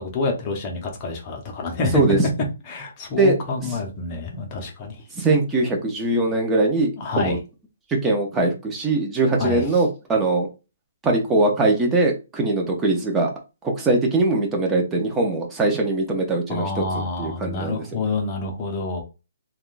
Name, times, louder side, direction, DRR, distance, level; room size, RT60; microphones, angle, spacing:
voice 1, 0.0-2.0 2.7-5.0 7.0-7.4 9.4-9.6 16.5-19.0, left 3 dB, 25° left, 0.8 m, -27 dB
voice 2, 5.2-6.9 7.2-7.4 8.0-10.5 11.0-13.3 13.6-18.0, right 2 dB, 10° right, 0.6 m, -21 dB
3.4 x 2.3 x 2.5 m
hypercardioid pair, 165°, 0 cm